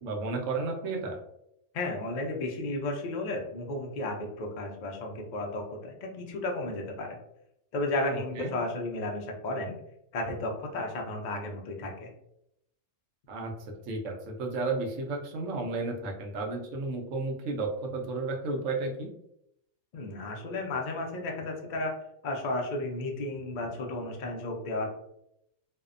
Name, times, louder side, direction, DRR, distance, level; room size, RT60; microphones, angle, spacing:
voice 1, 0.0-1.2 8.1-8.5 13.3-19.1, right 3 dB, 75° right, 1 dB, 0.9 m, -33 dB
voice 2, 1.7-7.2 7.7-9.7 10.1-12.1 19.9-21.9 22.2-24.9, left 2 dB, 80° left, 1 dB, 0.4 m, -33 dB
2.6 x 2.1 x 2.4 m, 0.78 s
omnidirectional pair, 1.3 m